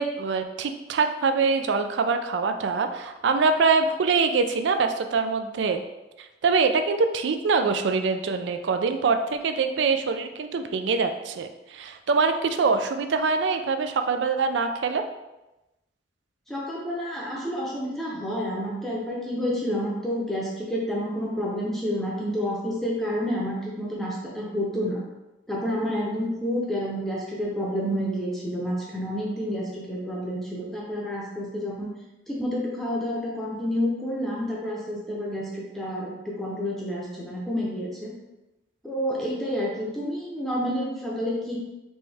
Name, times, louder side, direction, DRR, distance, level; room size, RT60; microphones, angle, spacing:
voice 1, 0.0-5.8 6.4-15.0, right 4 dB, 75° right, 7 dB, 0.4 m, -24 dB
voice 2, 16.5-25.0 25.5-31.9 32.3-38.1 38.8-41.6, equal, ahead, -5 dB, 0.7 m, -29 dB
4.4 x 3.2 x 3.4 m, 1.0 s
head